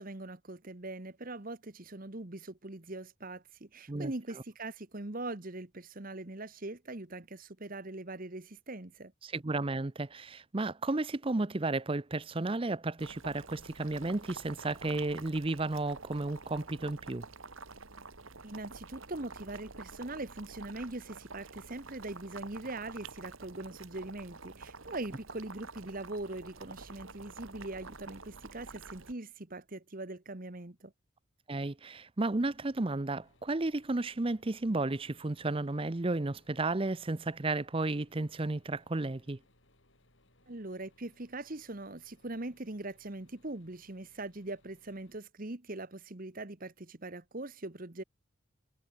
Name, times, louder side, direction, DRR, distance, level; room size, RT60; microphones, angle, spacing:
voice 1, 0.0-9.1 18.4-30.9 40.5-48.0, right 2 dB, 40° right, 1.4 m, -42 dB
voice 2, 9.2-17.3 31.5-39.4, right 2 dB, 25° right, 0.6 m, -33 dB
Boiling, 13.0-29.1, right 4 dB, 75° right, 2.7 m, -49 dB
sound 1, 32.4-45.2, left 1 dB, 65° left, 7.8 m, -68 dB
head